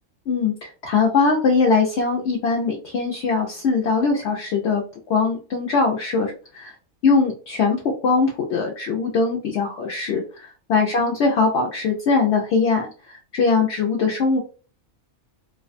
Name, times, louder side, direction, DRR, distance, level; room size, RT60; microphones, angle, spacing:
voice 1, 0.3-4.8 5.1-6.7 7.0-7.8 8.0-14.4, left 4 dB, 65° left, 0 dB, 0.7 m, -21 dB
2.4 x 2.2 x 2.5 m, 0.36 s
omnidirectional pair, 1.4 m